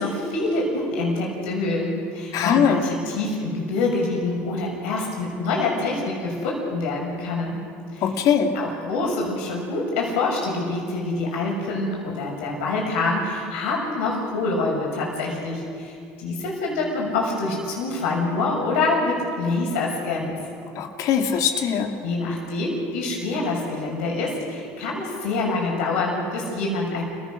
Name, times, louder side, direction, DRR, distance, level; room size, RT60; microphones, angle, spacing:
voice 1, 0.0-7.6 7.9-8.1 8.5-20.3 22.0-27.0, left 3 dB, 80° left, -2 dB, 6.9 m, -26 dB
voice 2, 2.3-2.8 8.0-8.5 20.8-21.9, left 8 dB, 60° left, 4 dB, 2.5 m, -21 dB
29.0 x 17.0 x 6.5 m, 2.3 s
hypercardioid pair, 80°, 7 cm